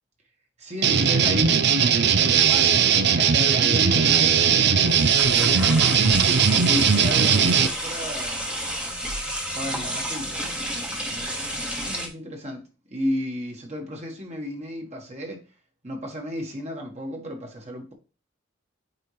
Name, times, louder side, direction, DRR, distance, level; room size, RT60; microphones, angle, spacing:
voice 1, 0.6-1.6 2.2-5.7 6.6-8.5 9.5-12.6 12.9-15.4 15.8-17.9, equal, 35° right, 1.6 m, -33 dB
sound 1, 0.8-7.7, right 6 dB, 60° right, 0.6 m, -19 dB
sound 2, 4.9-12.1, equal, 5° right, 1.2 m, -31 dB
8.9 x 4.4 x 3.2 m
head